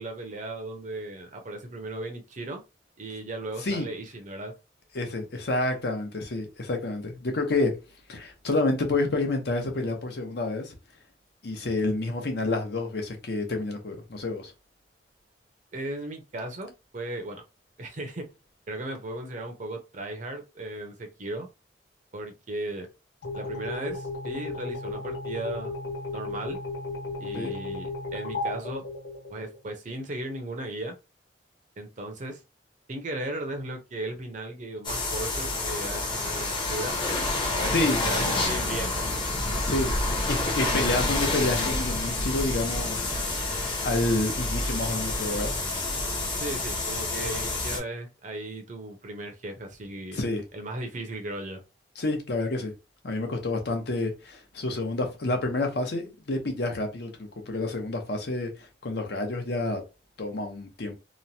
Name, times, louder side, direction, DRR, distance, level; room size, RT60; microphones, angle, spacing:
voice 1, 0.0-2.6 3.0-4.5 15.7-17.4 17.8-18.3 18.7-21.5 22.1-22.9 23.3-25.7 26.1-26.6 27.2-28.8 29.3-30.9 31.8-32.4 32.9-37.0 37.5-39.1 46.4-50.2 50.5-51.6, right 1 dB, 45° right, 0.7 m, -36 dB
voice 2, 4.9-7.8 8.1-10.8 11.4-14.5 27.3-27.5 37.7-38.0 39.6-39.9 40.3-43.1 43.8-45.5 50.1-50.4 52.0-52.7 53.0-59.8 60.2-60.9, left 2 dB, 65° left, 0.8 m, -29 dB
sound 1, 23.2-29.7, left 2 dB, 80° left, 1.2 m, -35 dB
sound 2, 34.8-47.8, left 2 dB, 30° left, 0.8 m, -28 dB
3.0 x 2.2 x 2.7 m
head